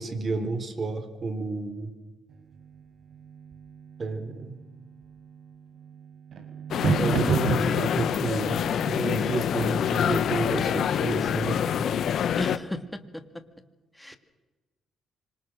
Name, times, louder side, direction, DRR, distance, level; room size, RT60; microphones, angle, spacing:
voice 1, 0.0-1.9 4.0-4.6 7.0-11.6, right 3 dB, 40° right, 9 dB, 4.0 m, -30 dB
sound 1, 2.3-13.1, right 6 dB, 60° right, 4.8 m, -35 dB
sound 2, 6.7-12.6, left 9 dB, 65° left, 1.2 m, -26 dB
voice 2, 12.4-13.4 13.9-14.2, left 2 dB, 5° left, 9 dB, 2.2 m, -35 dB
26.0 x 25.0 x 6.4 m, 1.1 s
cardioid pair, 90°, 0 cm